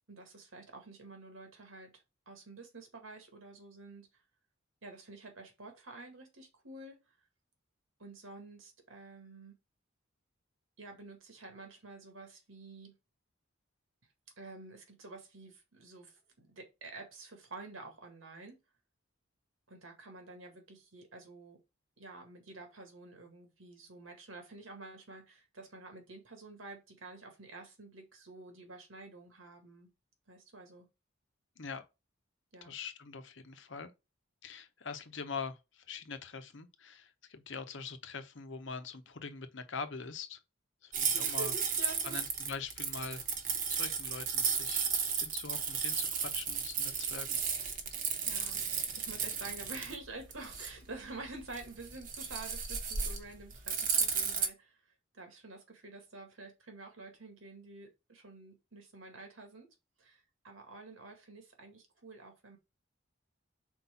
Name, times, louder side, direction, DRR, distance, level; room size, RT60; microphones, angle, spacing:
voice 1, 0.1-4.1 4.8-7.1 8.0-9.6 10.8-13.0 14.4-18.6 19.7-21.6 22.0-29.9 30.3-30.9 32.5-32.8 41.1-42.2 47.8-48.6 49.0-54.8 55.1-59.7 60.0-62.6, right 3 dB, 85° right, 2.0 m, -49 dB
voice 2, 32.6-33.9 34.4-40.4 40.8-41.5 42.0-43.3 43.7-44.9 45.2-47.4, left 5 dB, 65° left, 0.9 m, -43 dB
sound 1, 40.9-54.5, right 6 dB, 40° right, 1.1 m, -34 dB
4.6 x 4.2 x 5.8 m
head